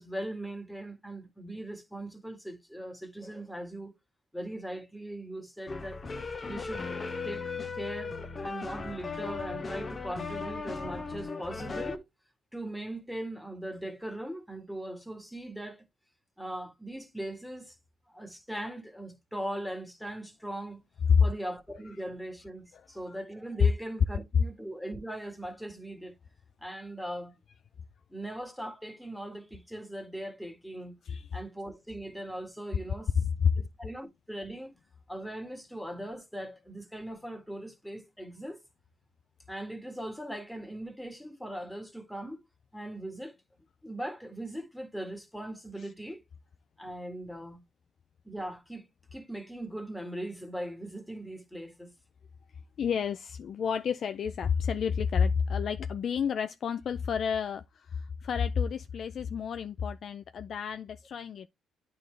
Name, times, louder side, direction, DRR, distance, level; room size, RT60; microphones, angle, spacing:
voice 1, 0.0-3.9 4.3-6.0 6.5-7.0 7.2-12.0 12.5-15.8 16.4-17.8 18.1-20.8 21.2-26.1 26.6-27.4 28.1-31.0 31.3-33.1 33.6-34.7 35.1-38.6 39.5-42.4 42.7-43.3 43.8-46.2 46.8-47.6 48.2-51.9, right 1 dB, ahead, 1.8 m, -40 dB
sound 1, 5.7-12.0, left 4 dB, 35° left, 1.0 m, -37 dB
voice 2, 22.7-23.2 31.0-31.3 33.2-33.5 52.8-61.5, left 6 dB, 55° left, 0.4 m, -29 dB
9.1 x 3.7 x 3.3 m
supercardioid pair, 70°, 0 cm